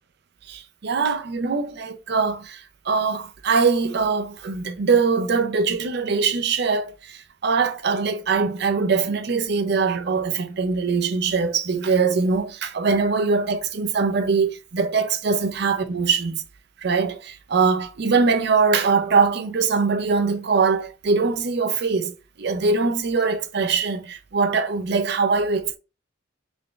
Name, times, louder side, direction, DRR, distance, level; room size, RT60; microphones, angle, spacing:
voice 1, 0.5-16.4 16.8-22.1 22.4-25.8, right 4 dB, 60° right, 0.5 m, -22 dB
3.5 x 2.4 x 3.7 m
head